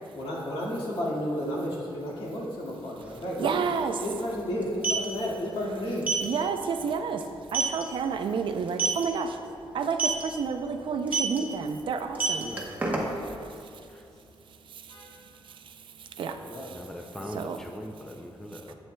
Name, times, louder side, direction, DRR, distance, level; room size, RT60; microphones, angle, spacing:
voice 1, 0.1-3.6 4.0-6.0 12.4-12.6 14.9-15.0 16.5-16.7 17.1-17.3, left 1 dB, 75° left, -5 dB, 1.9 m, -32 dB
sound 1, 3.0-3.1 3.3-3.5 4.6-5.0 6.0-6.2 6.7-6.9 7.2-7.3 7.5-7.8 8.7-9.0 9.9-10.2 11.1-11.4 12.0-13.3, right 4 dB, 15° right, 0.9 m, -26 dB
voice 2, 3.4-4.0 6.2-7.2 7.5-9.4 9.7-12.5 13.4-13.5 15.7-15.8 16.2-16.8 17.3-17.6, right 5 dB, 65° right, 7 dB, 0.5 m, -30 dB
voice 3, 16.7-18.7, left 1 dB, 5° left, 3 dB, 0.4 m, -40 dB
11.0 x 8.0 x 2.2 m, 2.6 s
wide cardioid pair, 170°, 9 cm